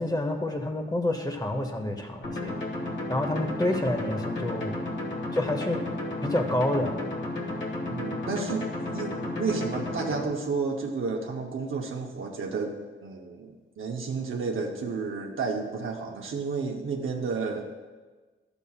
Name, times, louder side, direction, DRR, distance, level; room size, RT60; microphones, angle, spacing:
voice 1, 0.0-2.5 3.1-4.8 5.3-5.8 6.2-6.9, left 1 dB, 20° left, 4 dB, 1.0 m, -28 dB
sound 1, 2.2-10.2, left 2 dB, 60° left, 1.9 m, -33 dB
voice 2, 7.9-17.6, right 4 dB, 70° right, 0 dB, 0.8 m, -31 dB
12.0 x 7.0 x 2.4 m, 1.3 s
cardioid pair, 80°, 21 cm